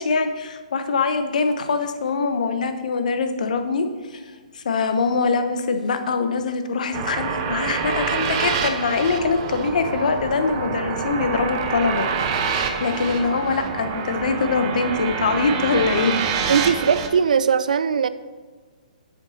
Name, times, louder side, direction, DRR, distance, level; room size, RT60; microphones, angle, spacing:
voice 1, 0.0-4.2 4.5-12.1 12.5-16.2, left 4 dB, 65° left, 7 dB, 1.0 m, -23 dB
sound 1, 6.9-17.1, right 6 dB, 40° right, 0.9 m, -26 dB
voice 2, 16.5-18.1, right 6 dB, 70° right, 15 dB, 0.5 m, -19 dB
8.2 x 7.0 x 4.2 m, 1.5 s
hypercardioid pair, 135°, 4 cm